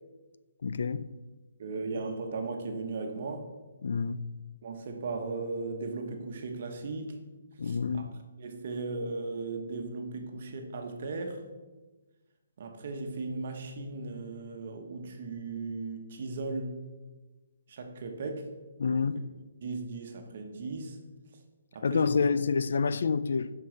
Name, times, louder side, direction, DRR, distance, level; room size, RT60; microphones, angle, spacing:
voice 1, 0.6-1.1 3.8-4.3 7.6-8.1 18.8-19.2 21.8-23.5, left 5 dB, 60° left, 0.4 m, -28 dB
voice 2, 1.6-3.5 4.6-7.2 7.6-8.0 8.4-11.4 12.6-16.8 17.7-18.6 18.9-19.1 19.6-21.1 21.7-22.2, right 3 dB, 40° right, 1.1 m, -37 dB
7.6 x 5.8 x 5.1 m
hypercardioid pair, 175°, 0 cm